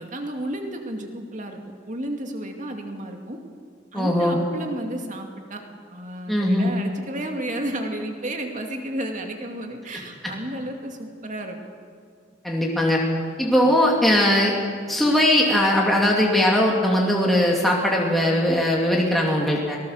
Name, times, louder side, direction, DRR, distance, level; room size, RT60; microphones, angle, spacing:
voice 1, 0.0-1.6 1.9-3.4 3.9-5.6 5.9-11.6, right 1 dB, 40° right, 3 dB, 2.3 m, -32 dB
voice 2, 3.9-4.4 6.3-6.7 10.2-10.3 12.4-13.0 13.4-14.6 14.9-19.8, left 1 dB, ahead, -3 dB, 2.4 m, -20 dB
23.0 x 19.0 x 6.5 m, 2.1 s
head